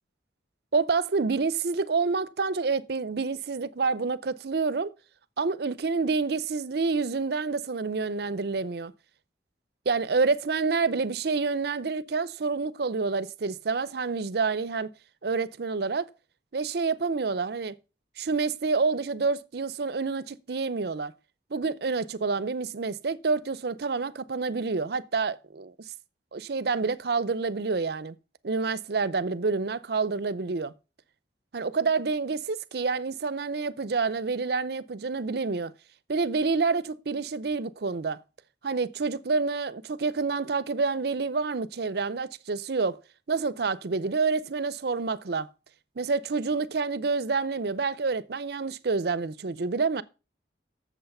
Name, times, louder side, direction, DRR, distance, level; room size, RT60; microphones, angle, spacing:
voice 1, 0.7-4.9 5.4-8.9 9.9-14.9 15.2-16.1 16.5-17.8 18.2-21.1 21.5-25.7 26.3-28.1 28.4-30.7 31.5-35.7 36.1-38.2 38.6-43.0 43.3-45.5 46.0-50.0, right 4 dB, 60° right, 0.6 m, -28 dB
8.1 x 7.3 x 5.4 m
head